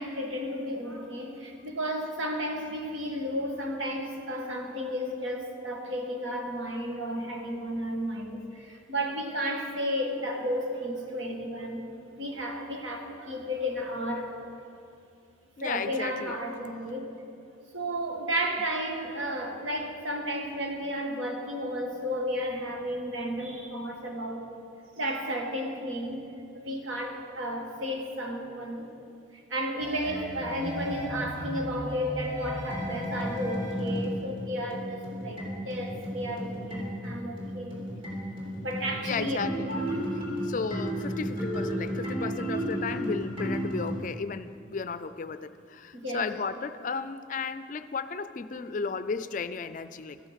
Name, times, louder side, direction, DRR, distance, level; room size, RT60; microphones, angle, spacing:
voice 1, 0.0-14.4 15.6-17.1 17.7-24.5 24.9-26.2 26.5-28.9 29.5-37.8 38.6-39.4 39.7-39.8 45.9-46.3, equal, 85° right, 2 dB, 1.6 m, -33 dB
voice 2, 15.6-16.4 37.9-38.0 39.0-39.7 40.4-50.2, left 5 dB, 40° left, 13 dB, 0.4 m, -34 dB
sound 1, 29.8-44.0, equal, 25° right, 3.2 m, -34 dB
13.0 x 10.0 x 5.7 m, 2.4 s
head